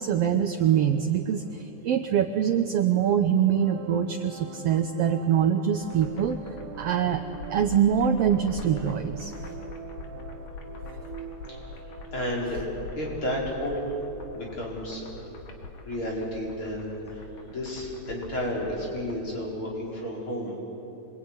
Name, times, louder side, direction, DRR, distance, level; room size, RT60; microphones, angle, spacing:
voice 1, 0.0-6.4 6.8-7.2 7.5-9.3, right 8 dB, 65° right, 6 dB, 1.7 m, -24 dB
sound 1, 0.5-14.5, right 5 dB, 35° right, 2.7 m, -45 dB
sound 2, 5.8-19.2, left 4 dB, 90° left, 3.4 m, -43 dB
voice 2, 11.8-12.6 13.0-13.8 14.3-15.4 15.8-20.7, equal, 45° left, -4 dB, 6.1 m, -32 dB
26.5 x 22.5 x 9.7 m, 3.0 s
omnidirectional pair, 3.3 m